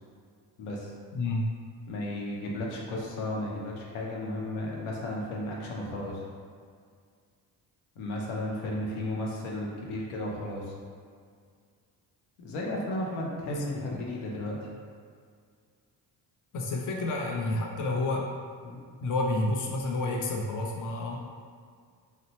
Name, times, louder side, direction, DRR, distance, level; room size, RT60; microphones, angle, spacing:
voice 1, 0.6-0.9 1.9-6.2 8.0-10.7 12.4-14.7 18.6-18.8, left 1 dB, 80° left, -2 dB, 0.7 m, -34 dB
voice 2, 1.1-1.5 13.5-13.6 13.9-14.0 16.5-18.3 19.0-21.2, left 2 dB, 40° left, -1 dB, 0.6 m, -29 dB
2.7 x 2.1 x 4.0 m, 2.1 s
supercardioid pair, 55°, 47 cm